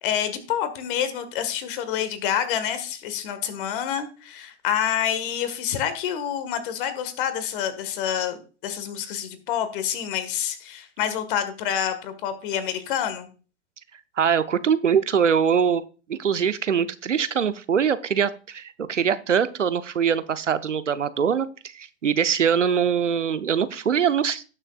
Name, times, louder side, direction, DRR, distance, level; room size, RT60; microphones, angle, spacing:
voice 1, 0.0-13.3, left 9 dB, 45° left, 11 dB, 1.7 m, -27 dB
voice 2, 14.2-15.8 16.1-24.4, right 7 dB, 85° right, 14 dB, 0.8 m, -23 dB
17.5 x 6.6 x 2.4 m, 0.36 s
figure-of-eight pair, 105°, 35 cm